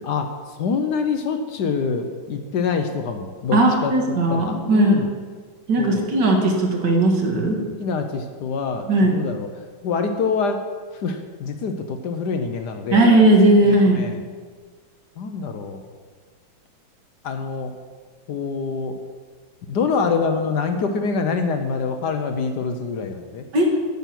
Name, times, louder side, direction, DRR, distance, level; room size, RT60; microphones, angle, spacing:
voice 1, 0.0-3.9 4.3-5.1 5.8-6.1 7.8-9.5 9.8-10.6 10.9-13.1 13.6-14.2 15.2-15.8 17.2-17.7 18.3-19.0 19.7-23.4, left 5 dB, 65° left, 6 dB, 1.2 m, -25 dB
voice 2, 3.5-5.0 5.7-7.6 8.9-9.2 12.9-14.1 23.5-23.7, right 1 dB, 60° right, 1 dB, 2.1 m, -17 dB
9.1 x 8.5 x 5.9 m, 1.6 s
omnidirectional pair, 2.1 m